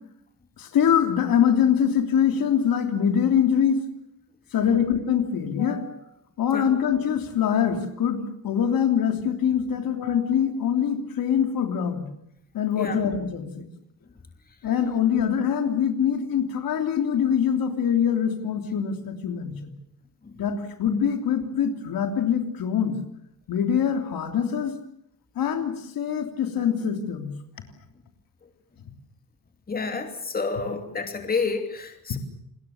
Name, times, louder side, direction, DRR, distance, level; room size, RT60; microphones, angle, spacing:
voice 1, 0.6-3.8 4.5-6.0 6.4-12.1 12.5-13.7 14.6-19.7 20.4-23.0 23.5-24.7 25.3-27.3, left 8 dB, 70° left, 6 dB, 3.2 m, -24 dB
voice 2, 29.7-32.2, left 4 dB, 25° left, 5 dB, 2.8 m, -29 dB
28.5 x 21.0 x 7.1 m, 0.76 s
cardioid pair, 140°, 36 cm